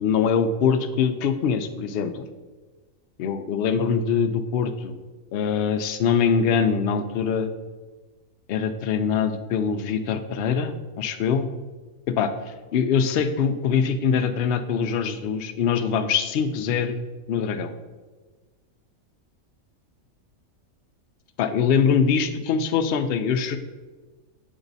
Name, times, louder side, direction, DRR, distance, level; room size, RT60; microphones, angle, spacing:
voice 1, 0.0-2.3 3.2-4.9 5.3-7.5 8.5-11.5 12.1-17.0 17.3-17.7 21.4-23.6, left 6 dB, 65° left, 9 dB, 0.6 m, -23 dB
8.1 x 3.7 x 4.0 m, 1.3 s
omnidirectional pair, 1.4 m